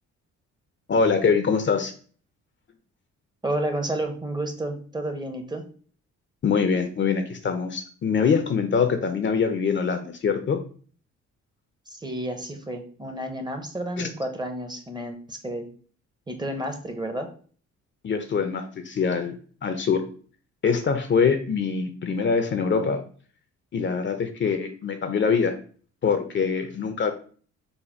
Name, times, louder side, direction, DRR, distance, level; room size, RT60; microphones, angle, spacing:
voice 1, 0.9-1.9 6.4-10.6 14.0-14.1 18.0-20.0 20.6-23.0 23.7-25.5 26.0-27.1, left 5 dB, 40° left, 8 dB, 0.6 m, -24 dB
voice 2, 3.4-5.7 11.9-15.7 16.3-17.3, right 1 dB, 15° right, 6 dB, 0.7 m, -31 dB
4.1 x 2.1 x 4.4 m, 0.43 s
cardioid pair, 90°, 30 cm